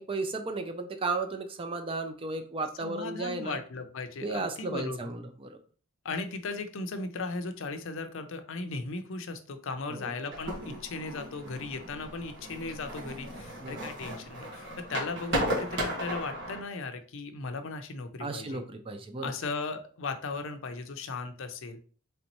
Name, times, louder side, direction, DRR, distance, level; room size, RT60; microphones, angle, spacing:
voice 1, 0.0-3.6 4.2-5.5 9.9-10.1 13.6-13.8 18.2-19.3, right 3 dB, 25° right, 8 dB, 0.4 m, -34 dB
voice 2, 2.8-5.1 6.0-18.6 19.2-21.8, left 3 dB, 65° left, 8 dB, 0.5 m, -37 dB
sound 1, 10.3-16.6, equal, 55° right, 1.5 m, -35 dB
4.0 x 3.3 x 3.0 m, 0.42 s
head